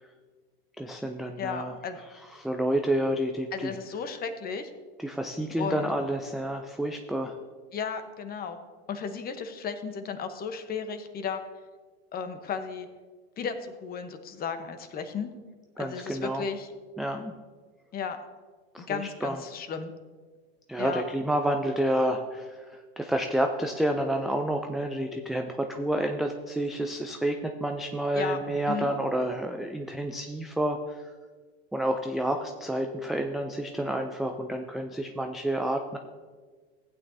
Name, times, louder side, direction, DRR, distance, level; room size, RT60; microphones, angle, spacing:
voice 1, 0.8-1.7 2.3-3.8 5.0-7.4 15.8-16.4 17.0-17.3 18.7-19.4 20.7-31.0 31.7-36.0, right 1 dB, ahead, 3 dB, 0.3 m, -29 dB
voice 2, 1.4-2.0 3.5-4.7 5.6-5.9 7.7-8.6 8.9-11.4 12.1-12.9 13.4-15.3 15.8-16.7 17.9-18.2 18.8-19.9 20.8-21.0 28.1-28.4 28.7-28.9, left 6 dB, 30° left, 9 dB, 1.0 m, -34 dB
15.0 x 8.8 x 2.7 m, 1.4 s
hypercardioid pair, 115°, 32 cm